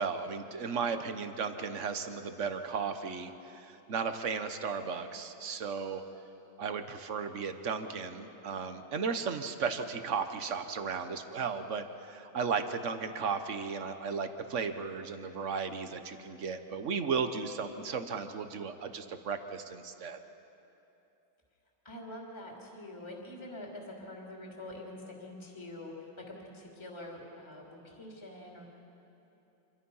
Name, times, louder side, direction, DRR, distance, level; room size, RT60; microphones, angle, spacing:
voice 1, 0.0-6.0 6.6-20.2, right 5 dB, 45° right, 8 dB, 1.1 m, -35 dB
voice 2, 21.8-28.6, left 1 dB, 15° left, -2 dB, 2.9 m, -45 dB
27.5 x 23.0 x 5.6 m, 2.9 s
omnidirectional pair, 2.2 m